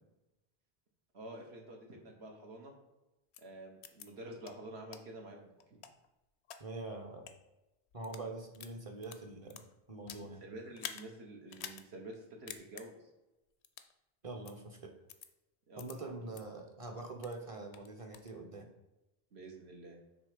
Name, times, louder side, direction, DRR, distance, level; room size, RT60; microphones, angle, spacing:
voice 1, 1.1-2.7 3.4-5.5 10.2-13.1 15.7-16.2 19.3-20.0, right 1 dB, 80° right, 1 dB, 1.5 m, -49 dB
sound 1, 3.3-3.4 3.8-4.1 4.4-4.5 4.9-5.0 5.6-6.6 7.1-7.3 7.9-8.3 8.5-10.3 10.7-11.0 11.5-11.8 12.1-12.2 12.5-12.8 13.6-13.9 14.4-14.5 15.1-15.3 15.8-15.9 16.3-16.4 16.9-17.4 17.7-18.3, left 8 dB, 85° left, 0.9 m, -47 dB
voice 2, 6.6-7.3 7.9-10.4 14.2-15.0 15.8-18.7, right 2 dB, 35° right, 4 dB, 0.8 m, -44 dB
7.9 x 3.3 x 5.0 m, 0.99 s
omnidirectional pair, 1.1 m